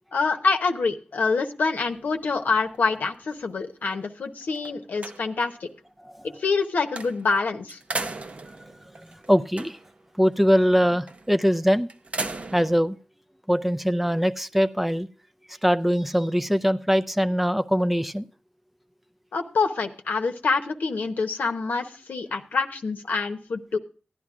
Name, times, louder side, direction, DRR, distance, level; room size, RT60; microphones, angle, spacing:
voice 1, 0.1-5.7 6.2-7.8 19.3-23.8, left 4 dB, 80° left, 5 dB, 0.9 m, -26 dB
sound 1, 1.9-3.4 3.9-4.0 4.4-5.6 7.0-7.4 7.7-10.0 11.1-11.4 11.9-12.8, right 3 dB, 45° right, 0.6 m, -37 dB
voice 2, 9.0-9.8 10.2-11.9 12.5-13.0 13.5-15.1 15.6-18.3, equal, 5° right, 9 dB, 0.4 m, -22 dB
15.5 x 10.5 x 2.4 m, 0.37 s
wide cardioid pair, 70°, 3 cm